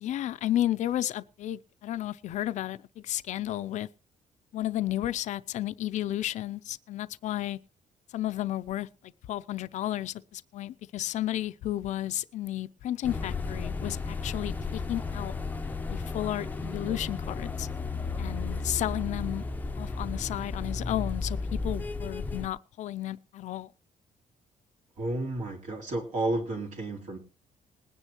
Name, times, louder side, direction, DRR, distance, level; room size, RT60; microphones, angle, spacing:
voice 1, 0.0-3.9 4.5-7.6 8.1-15.3 15.9-17.7 18.2-19.4 19.8-23.7, left 13 dB, 60° left, 0.5 m, -33 dB
sound 1, 13.0-22.5, left 3 dB, 10° left, 0.7 m, -34 dB
voice 2, 25.0-27.2, right 2 dB, 65° right, 3.2 m, -31 dB
20.5 x 9.9 x 3.0 m
cardioid pair, 165°, 14 cm